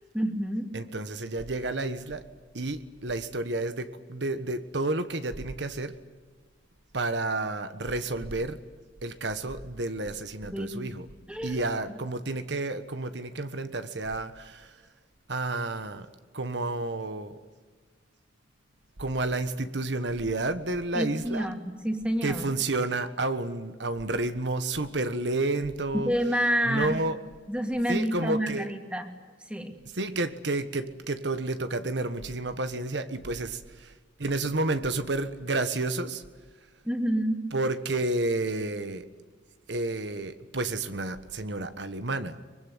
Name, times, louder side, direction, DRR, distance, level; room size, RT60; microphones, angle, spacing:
voice 1, 0.1-0.7 10.5-10.9 11.3-11.6 20.9-22.5 25.9-27.0 27.5-29.0 29.5-29.7 36.8-37.4, equal, 5° right, 5 dB, 2.7 m, -28 dB
voice 2, 0.7-2.2 2.5-5.9 6.9-8.6 9.0-11.1 11.4-14.8 15.3-17.4 19.0-21.5 22.2-26.1 26.6-27.2 27.9-28.7 29.9-33.9 34.2-36.2 37.5-39.1 39.7-42.4, right 2 dB, 65° right, 10 dB, 1.4 m, -30 dB
24.0 x 22.0 x 9.6 m, 1.4 s
head